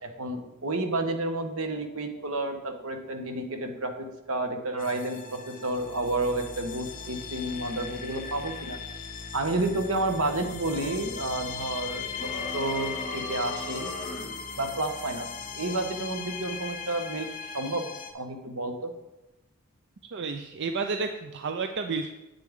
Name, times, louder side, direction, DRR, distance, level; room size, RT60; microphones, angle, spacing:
voice 1, 0.0-8.8 9.3-13.9 14.6-15.3 15.5-17.3 17.5-17.8 18.1-18.9, right 2 dB, 80° right, 5 dB, 1.3 m, -30 dB
sound 1, 4.8-18.1, left 6 dB, 40° left, 1.0 m, -38 dB
sound 2, 12.1-14.3, left 1 dB, 15° left, 3.2 m, -37 dB
voice 2, 20.0-22.2, right 4 dB, 55° right, 6 dB, 0.5 m, -31 dB
9.4 x 8.8 x 3.7 m, 1.0 s
head